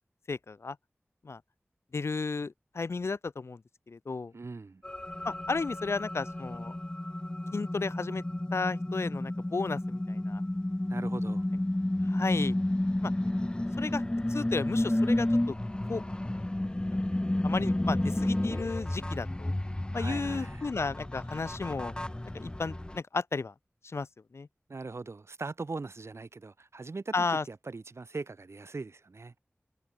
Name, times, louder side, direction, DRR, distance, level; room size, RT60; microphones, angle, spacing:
voice 1, 0.3-0.8 1.2-1.4 1.9-3.6 3.9-4.3 5.2-6.8 7.5-8.2 8.5-10.4 12.0-12.6 13.0-13.1 13.8-14.0 14.3-15.6 15.9-16.0 16.3-16.4 16.9-17.0 17.4-19.5 19.9-21.9 22.3-23.5 23.8-24.1 24.3-24.5 27.1-27.4, left 4 dB, 80° left, 0.6 m, -33 dB
voice 2, 4.3-4.8 10.9-11.4 19.9-20.7 24.7-29.3, right 3 dB, 85° right, 4.4 m, -40 dB
sound 1, 4.8-23.0, left 1 dB, 20° left, 0.6 m, -31 dB
wide cardioid pair, 50°, 4 cm